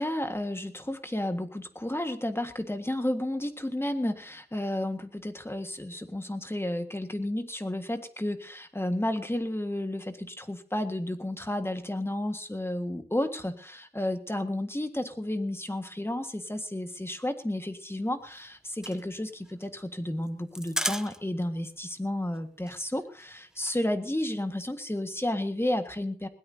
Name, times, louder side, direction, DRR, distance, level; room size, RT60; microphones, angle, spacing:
voice 1, 0.0-26.3, left 1 dB, 15° left, 7 dB, 1.7 m, -32 dB
sound 1, 18.2-21.6 21.8-21.9 22.2-22.4 22.7-23.8, equal, 5° right, 0.9 m, -36 dB
21.0 x 17.5 x 2.8 m, 0.42 s
wide cardioid pair, 90°, 17 cm